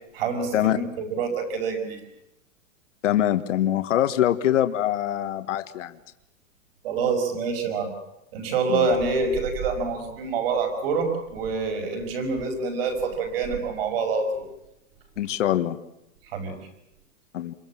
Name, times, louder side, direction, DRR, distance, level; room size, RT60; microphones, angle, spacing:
voice 1, 0.1-2.0 6.8-7.9 8.3-14.4 16.3-16.6, right 4 dB, 45° right, 4 dB, 5.9 m, -26 dB
voice 2, 3.0-5.9 8.7-8.9 15.2-15.8 17.3-17.5, left 12 dB, 60° left, 9 dB, 1.7 m, -23 dB
27.5 x 23.0 x 7.6 m, 0.85 s
supercardioid pair, 180°, 41 cm